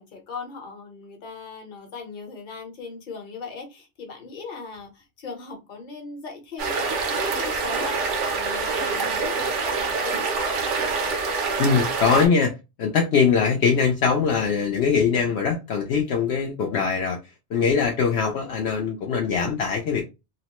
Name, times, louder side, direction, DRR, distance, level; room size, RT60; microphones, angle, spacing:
voice 1, 0.0-10.5, left 4 dB, 45° left, 1.0 m, -39 dB
sound 1, 6.6-12.3, right 4 dB, 85° right, 1.1 m, -25 dB
voice 2, 11.6-12.5 12.8-17.2 17.5-20.0, left 6 dB, 70° left, 0.8 m, -22 dB
2.9 x 2.1 x 2.9 m
omnidirectional pair, 1.2 m